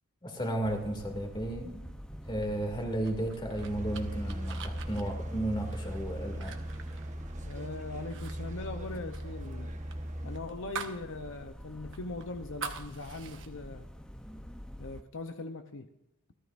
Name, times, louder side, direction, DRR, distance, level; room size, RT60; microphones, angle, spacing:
voice 1, 0.2-1.8 2.2-6.6, right 1 dB, 25° left, 2 dB, 2.5 m, -34 dB
sound 1, 0.6-15.0, equal, 5° left, 0.8 m, -46 dB
sound 2, 3.0-7.6 8.0-8.3 8.6-11.0 11.4-11.5 11.9-13.5, right 6 dB, 65° right, 1.3 m, -44 dB
sound 3, 3.6-10.4, right 1 dB, 35° right, 1.2 m, -39 dB
voice 2, 7.4-9.7 10.2-13.9 14.8-15.9, left 3 dB, 65° left, 6 dB, 0.9 m, -40 dB
28.0 x 12.5 x 2.6 m, 0.88 s
head